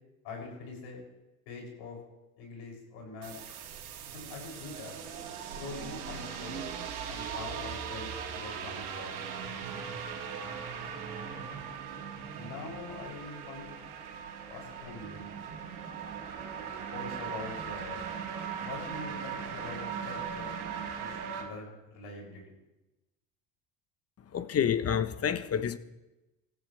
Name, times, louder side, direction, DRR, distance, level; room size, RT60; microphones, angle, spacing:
voice 1, 0.2-1.0 1.5-2.0 2.4-3.4 4.1-5.0 5.6-6.7 7.1-9.1 12.4-13.8 14.5-15.3 16.9-18.1 18.6-20.5 21.0-22.6, left 3 dB, 70° left, 7.1 m, -44 dB
sound 1, 3.2-21.4, right 7 dB, 90° right, 2.4 m, -39 dB
voice 2, 24.3-25.8, left 8 dB, 35° left, 1.0 m, -28 dB
25.5 x 14.5 x 3.4 m
hypercardioid pair, 75°, 42 cm